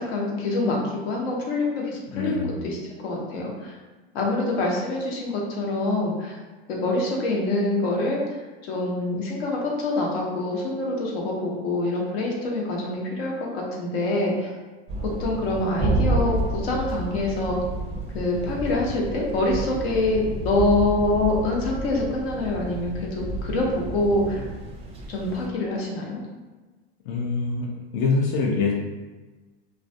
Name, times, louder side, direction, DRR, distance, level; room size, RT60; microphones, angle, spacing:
voice 1, 0.0-3.7 4.1-6.4 6.7-14.5 15.2-17.6 18.1-24.4 25.1-26.2, left 2 dB, 80° left, -1 dB, 0.8 m, -25 dB
voice 2, 2.1-2.5 27.0-28.7, left 4 dB, 50° left, -1 dB, 0.4 m, -25 dB
sound 1, 14.9-25.5, right 2 dB, 20° right, 0.4 m, -30 dB
2.3 x 2.2 x 2.6 m, 1.2 s
supercardioid pair, 130°, 31 cm